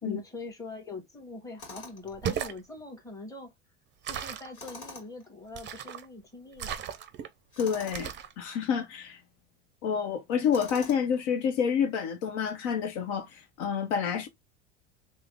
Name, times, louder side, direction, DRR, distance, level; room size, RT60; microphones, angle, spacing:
voice 1, 0.0-3.5 4.0-6.8, left 3 dB, 10° left, 1.4 m, -42 dB
Tools, 1.6-2.2 4.5-5.3 7.5-8.1 10.5-11.2, left 2 dB, 40° left, 2.2 m, -45 dB
sound 1, 2.1-2.6 4.0-4.5 5.5-6.1 6.6-7.3 7.9-8.3, right 9 dB, 30° right, 0.5 m, -35 dB
voice 2, 7.6-8.1 8.4-9.2 9.8-14.3, left 7 dB, 65° left, 0.9 m, -28 dB
3.3 x 2.1 x 3.5 m
hypercardioid pair, 90°, 37 cm